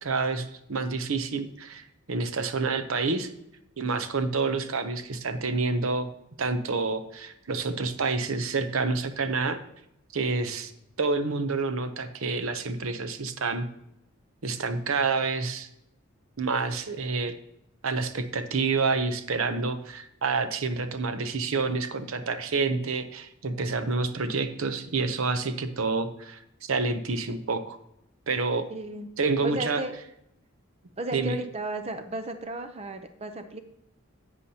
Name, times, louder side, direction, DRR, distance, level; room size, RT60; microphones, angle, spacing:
voice 1, 0.0-3.3 3.8-6.1 6.4-9.6 10.1-10.7 11.0-13.7 14.4-15.7 16.4-17.3 17.8-27.8 28.3-28.7 29.2-29.8 31.1-31.4, right 4 dB, 75° right, 10 dB, 0.8 m, -28 dB
voice 2, 28.7-29.1 29.4-29.9 31.0-33.6, right 2 dB, 30° right, 8 dB, 0.6 m, -34 dB
11.0 x 8.1 x 2.9 m, 0.80 s
head